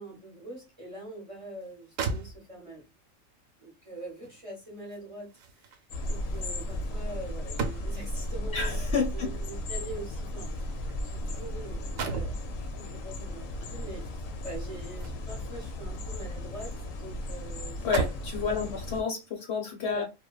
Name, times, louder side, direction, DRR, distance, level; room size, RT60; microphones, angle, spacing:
voice 1, 0.0-2.8 3.6-17.9 18.5-18.8 19.8-20.0, right 1 dB, 30° right, -2 dB, 0.7 m, -44 dB
sound 1, 1.6-1.7 2.0-2.8 4.2-8.2 9.3-11.4 11.7-12.5 13.9-15.5 15.9-16.9 17.2-17.3 17.7-18.4 19.1-19.3, right 4 dB, 85° right, 1.0 m, -37 dB
sound 2, 5.9-19.0, left 1 dB, 90° left, 1.0 m, -35 dB
voice 2, 8.5-9.3 17.8-20.0, left 5 dB, 65° left, 2 dB, 0.8 m, -30 dB
2.8 x 2.1 x 2.2 m, 0.27 s
omnidirectional pair, 1.4 m